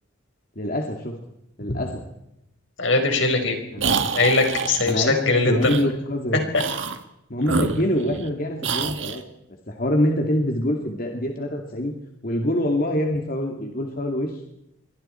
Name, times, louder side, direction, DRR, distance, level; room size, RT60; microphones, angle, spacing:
voice 1, 0.6-1.2 1.6-2.0 3.7-4.0 4.8-6.5 7.3-9.2 9.7-11.9 12.2-14.4, left 1 dB, 45° left, 1 dB, 2.4 m, -25 dB
voice 2, 2.8-3.6 4.1-5.6, left 3 dB, 75° left, 4 dB, 4.9 m, -21 dB
sound 1, 3.8-4.9 5.6-5.9 6.5-7.0 7.4-8.3 8.6-9.2, right 5 dB, 70° right, 1.7 m, -27 dB
28.0 x 23.5 x 4.5 m, 0.82 s
head